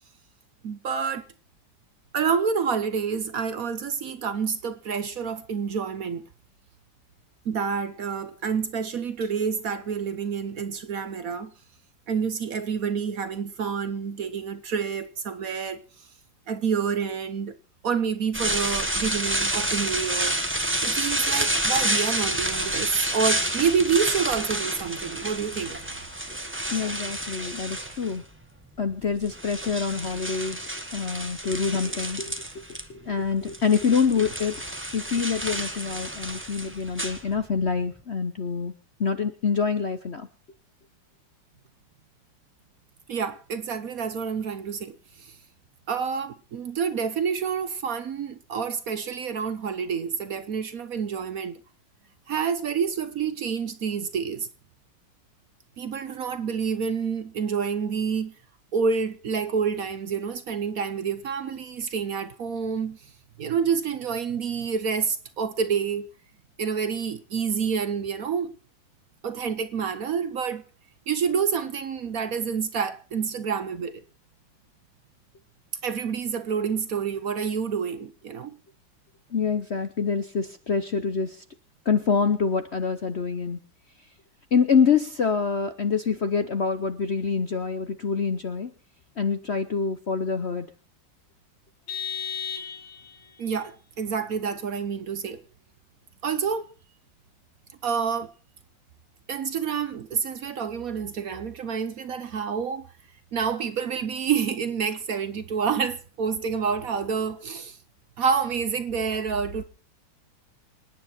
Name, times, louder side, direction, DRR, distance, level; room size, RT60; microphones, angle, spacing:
voice 1, 0.6-1.3 2.1-6.2 7.4-11.5 12.1-15.8 16.5-17.6 17.8-20.4 20.8-25.8 43.1-45.4 45.9-51.6 52.3-54.5 55.8-58.3 58.7-63.1 63.4-66.1 66.6-68.5 69.2-70.6 71.1-74.0 75.8-78.6 93.4-95.4 96.2-96.7 97.8-98.3 99.3-102.9 103.3-107.8 108.2-109.6, right 6 dB, 55° right, 1.1 m, -28 dB
sound 1, 18.3-28.2 29.0-32.8 33.1-37.7, right 1 dB, 5° right, 1.2 m, -29 dB
voice 2, 26.7-28.2 28.8-32.3 32.9-34.6 34.9-38.7 39.0-40.3 79.3-81.4 81.9-83.6 84.5-88.7 89.2-90.7, left 5 dB, 50° left, 0.8 m, -26 dB
Vehicle horn car horn honking, 91.9-93.3, left 7 dB, 75° left, 2.5 m, -34 dB
26.5 x 9.8 x 4.3 m
omnidirectional pair, 2.1 m